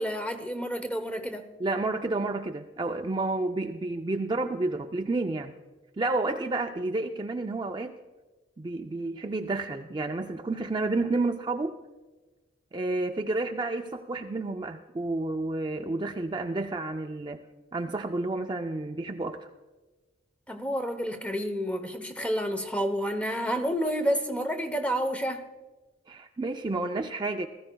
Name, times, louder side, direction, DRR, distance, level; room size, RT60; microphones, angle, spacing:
voice 1, 0.0-1.5 20.5-25.5, equal, 5° left, 0.8 m, -29 dB
voice 2, 1.6-5.6 6.0-8.0 8.6-11.8 12.7-17.4 17.7-19.5 26.1-27.5, right 2 dB, 25° right, 0.4 m, -30 dB
20.0 x 14.5 x 2.3 m
head